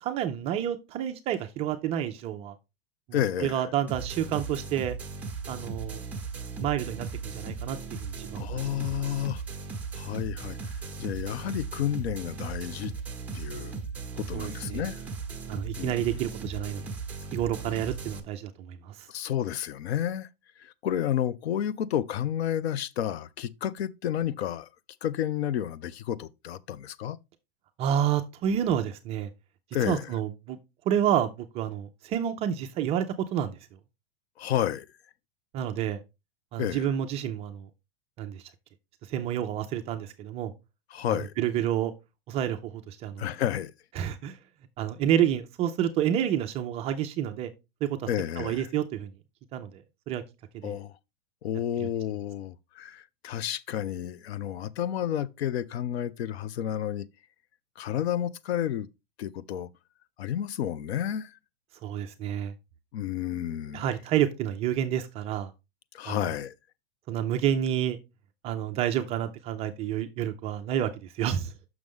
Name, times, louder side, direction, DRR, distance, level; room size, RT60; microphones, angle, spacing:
voice 1, 0.0-2.5 3.1-5.0 5.5-6.0 6.6-8.4 8.8-9.0 14.3-14.8 15.5-16.8 17.3-19.1 27.8-29.3 29.9-30.6 30.9-33.6 35.5-36.0 36.5-37.7 38.2-38.4 39.1-40.5 41.4-41.9 42.3-43.3 44.0-44.4 44.8-47.5 47.8-48.1 48.4-49.1 49.5-50.2 50.6-50.8 51.8-51.9 61.8-62.5 63.7-65.5 66.1-66.2 67.1-68.0 68.4-71.5, right 10 dB, 20° right, 0.4 m, -29 dB
voice 2, 3.1-3.6 8.4-9.4 9.9-12.9 13.3-13.8 14.1-15.0 15.8-15.9 19.1-20.3 20.6-24.7 25.0-27.2 29.7-30.1 34.4-34.9 36.6-36.9 40.9-41.3 43.2-43.7 48.1-48.7 50.6-50.9 51.4-57.1 57.8-58.9 59.2-59.7 60.2-61.4 62.9-63.9 65.9-66.5, left 10 dB, 85° left, 0.6 m, -31 dB
sound 1, 3.9-18.2, right 4 dB, 5° right, 0.9 m, -37 dB
6.4 x 6.1 x 3.5 m
supercardioid pair, 150°, 31 cm